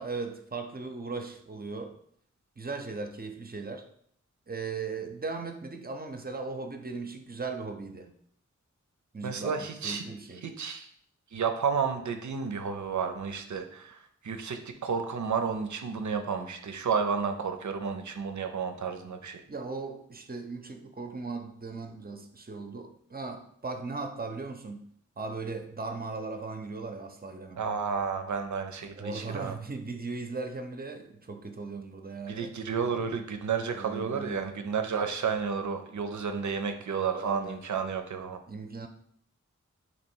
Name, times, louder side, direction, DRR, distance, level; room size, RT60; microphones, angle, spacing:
voice 1, 0.0-2.0 2.6-3.9 4.5-8.1 9.1-10.5 19.5-24.8 25.2-27.6 29.0-32.5 32.9-33.2 33.7-34.4 36.9-37.6 38.5-38.9, right 4 dB, 30° right, 0.6 m, -38 dB
voice 2, 9.2-10.0 10.4-10.9 11.3-14.0 14.2-19.4 27.6-29.5 32.3-38.4, right 6 dB, 75° right, 0.5 m, -31 dB
3.0 x 2.9 x 4.4 m
cardioid pair, 45°, 30 cm